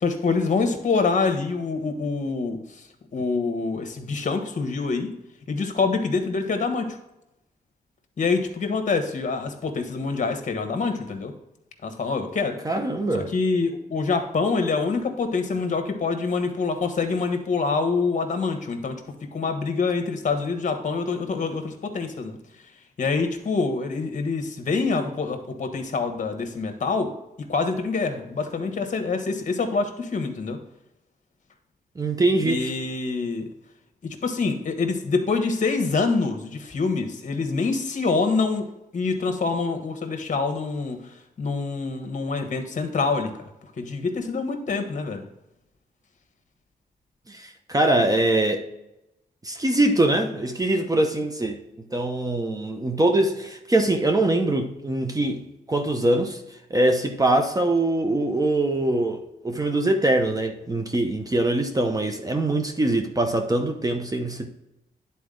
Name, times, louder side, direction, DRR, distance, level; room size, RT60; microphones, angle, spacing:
voice 1, 0.0-2.6 3.1-5.1 5.5-7.0 8.2-11.3 11.8-12.6 13.1-19.0 19.3-22.4 23.0-27.1 27.5-30.6 32.4-33.5 34.2-38.7 38.9-41.0 41.4-43.3 43.8-45.2, left 4 dB, 50° left, 6 dB, 1.2 m, -25 dB
voice 2, 12.6-13.3 32.0-32.7 47.3-48.6 49.4-51.6 51.9-55.4 55.7-56.4 56.7-64.5, right 2 dB, 20° right, 4 dB, 0.8 m, -23 dB
10.0 x 4.1 x 3.8 m, 0.89 s
cardioid pair, 95°, 17 cm